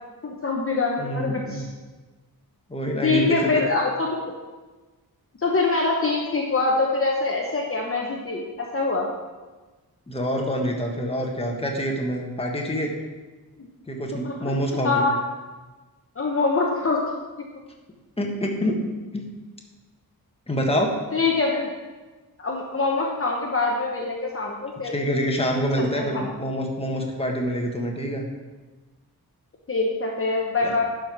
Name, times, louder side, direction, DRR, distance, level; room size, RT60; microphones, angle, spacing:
voice 1, 0.2-1.7 3.0-4.1 5.4-9.1 13.6-13.7 14.2-14.3 14.8-15.2 16.2-17.0 21.1-21.7 22.4-24.9 25.8-26.3 29.7-30.8, left 3 dB, 35° left, -1 dB, 1.0 m, -24 dB
voice 2, 1.0-1.6 2.7-3.5 10.1-12.9 13.9-15.1 18.2-18.8 19.1-19.3 20.5-21.0 24.9-28.3 30.6-30.8, equal, 15° left, 0 dB, 1.3 m, -26 dB
11.0 x 5.1 x 6.0 m, 1.3 s
wide cardioid pair, 150°, 37 cm